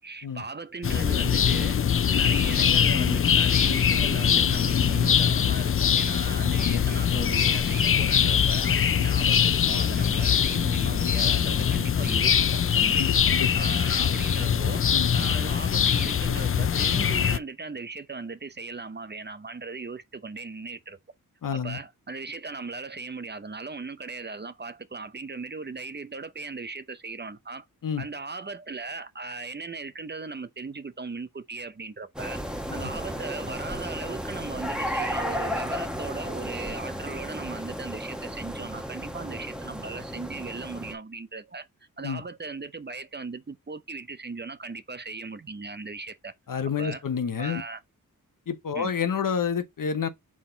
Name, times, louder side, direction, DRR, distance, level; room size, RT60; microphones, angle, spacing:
voice 1, 0.0-1.8 2.2-14.9 15.1-21.0 21.5-27.7 28.0-32.4 32.7-41.7 42.0-46.3 46.8-47.0 47.4-47.8 48.7-48.9, right 4 dB, 30° right, 0.7 m, -38 dB
sound 1, 0.8-17.4, left 8 dB, 40° left, 0.4 m, -23 dB
voice 2, 6.5-6.9 13.0-13.5 14.9-15.1 21.4-21.8 27.8-28.0 32.7-32.9 42.0-42.2 46.5-47.6 48.5-50.1, left 6 dB, 65° left, 1.0 m, -29 dB
sound 2, 32.2-40.9, equal, ahead, 1.2 m, -33 dB
6.2 x 4.1 x 3.9 m
wide cardioid pair, 90°, 35 cm